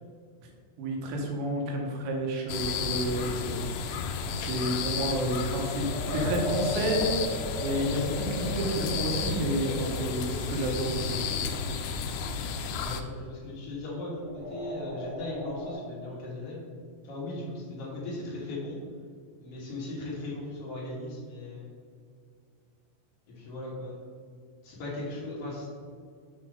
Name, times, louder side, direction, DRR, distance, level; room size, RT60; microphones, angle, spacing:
voice 1, 0.8-3.6 4.3-7.0 7.6-11.6, right 1 dB, 85° right, 0 dB, 3.2 m, -30 dB
sound 1, 2.5-13.0, left 5 dB, 90° left, 2.1 m, -32 dB
sound 2, 5.7-11.7 14.1-15.7, equal, 60° right, 3.1 m, -37 dB
voice 2, 12.8-16.6 17.0-18.8 19.4-21.7 23.3-24.0 24.6-25.7, left 2 dB, 70° left, -5 dB, 1.4 m, -38 dB
6.8 x 3.7 x 5.0 m, 2.1 s
omnidirectional pair, 5.0 m